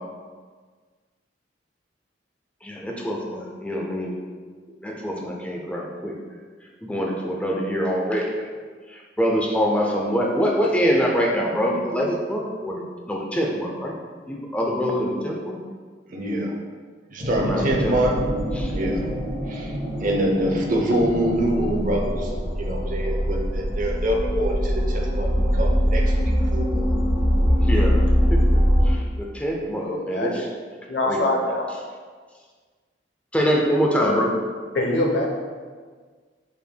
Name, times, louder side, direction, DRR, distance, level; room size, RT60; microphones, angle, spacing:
voice 1, 2.6-4.2 4.8-6.1 6.8-8.5 8.9-12.8 13.1-13.9 14.3-15.6 17.3-17.9 18.5-18.7 27.7-28.0 28.3-30.5 31.0-31.2 33.3-34.3, equal, 5° left, -1 dB, 0.4 m, -24 dB
voice 2, 16.1-16.5 17.1-18.2 18.7-19.1 19.5-19.7 20.0-22.3 22.6-26.8, right 1 dB, 50° right, 0 dB, 0.7 m, -25 dB
sound 1, 17.2-28.9, equal, 25° right, 1.5 m, -23 dB
voice 3, 29.8-30.3 30.9-31.7 34.7-35.3, left 1 dB, 75° left, 0 dB, 0.8 m, -23 dB
5.5 x 4.4 x 2.2 m, 1.6 s
head